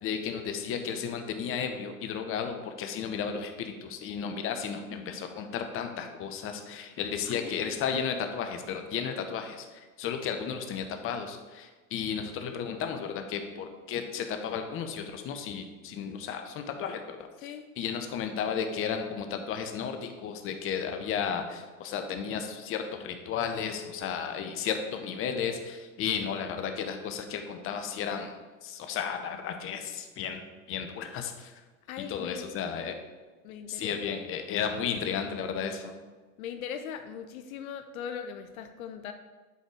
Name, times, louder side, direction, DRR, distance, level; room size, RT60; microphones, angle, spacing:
voice 1, 0.0-17.2 17.8-28.3 28.6-31.5 32.0-33.0 33.7-35.9, left 7 dB, 30° left, 6 dB, 0.8 m, -33 dB
voice 2, 7.3-7.8 17.4-17.7 31.9-32.5 33.4-34.3 36.4-39.1, left 8 dB, 65° left, 8 dB, 0.7 m, -40 dB
8.1 x 4.2 x 4.7 m, 1.3 s
hypercardioid pair, 110°, 45 cm